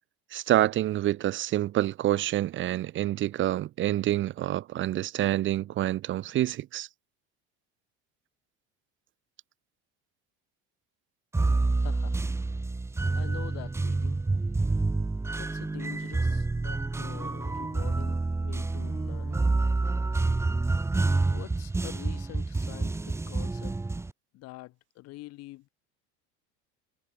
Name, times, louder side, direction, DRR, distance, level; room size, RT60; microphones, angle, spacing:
voice 1, 0.3-6.9, right 13 dB, 40° right, 1.1 m, -27 dB
sound 1, 11.3-24.1, right 3 dB, 10° right, 1.4 m, -28 dB
voice 2, 11.8-12.2 13.1-14.2 15.4-19.5 21.3-23.8 24.3-25.7, left 18 dB, 55° left, 5.2 m, -45 dB
cardioid pair, 150°, 29 cm